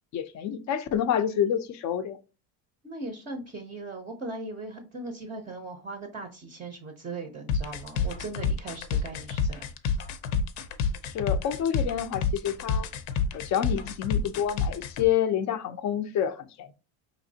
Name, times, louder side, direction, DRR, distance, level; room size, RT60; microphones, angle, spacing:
voice 1, 0.1-2.2 11.0-12.9 13.3-16.7, left 9 dB, 40° left, 0.4 m, -28 dB
voice 2, 2.8-9.7, right 2 dB, 20° right, 0.5 m, -39 dB
sound 1, 7.5-15.0, left 5 dB, 80° left, 0.7 m, -28 dB
5.0 x 3.1 x 2.7 m
cardioid pair, 145°, 47 cm